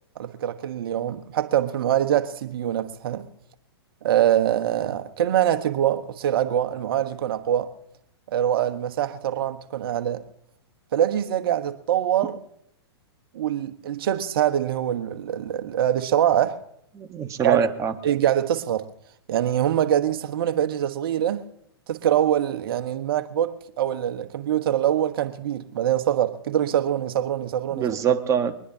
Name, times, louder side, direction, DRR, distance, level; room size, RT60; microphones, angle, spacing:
voice 1, 0.2-3.3 4.0-7.7 8.3-10.2 10.9-12.3 13.3-16.6 17.4-17.7 18.0-18.9 19.3-21.4 21.9-28.0, right 11 dB, 60° right, 1.3 m, -24 dB
voice 2, 16.9-17.9 27.7-28.5, right 7 dB, 20° right, 1.3 m, -23 dB
23.0 x 20.0 x 2.8 m
hypercardioid pair, 115°, 14 cm